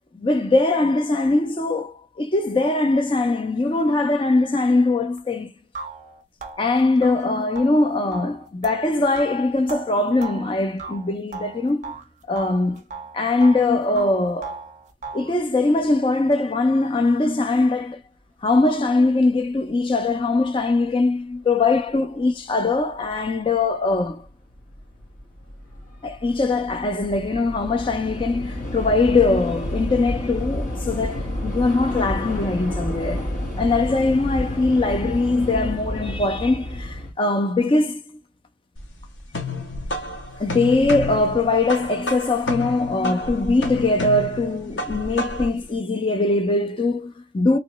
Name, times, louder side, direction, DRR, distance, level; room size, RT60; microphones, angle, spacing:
voice 1, 0.1-5.5 6.6-11.9 12.3-12.8 13.1-14.6 15.1-18.0 18.4-24.3 26.0-33.2 33.6-38.0 40.4-47.6, left 2 dB, 25° left, 0.3 m, -21 dB
sound 1, 5.2-5.3 5.7-12.1 12.4-13.7 14.0-15.4, right 4 dB, 40° right, 0.5 m, -37 dB
Train / Subway metro underground, 23.1-23.2 24.0-24.3 24.5-37.1, left 1 dB, 40° left, 1.2 m, -30 dB
sound 2, 38.8-45.6, left 2 dB, 80° left, 0.9 m, -30 dB
3.0 x 2.8 x 3.0 m
head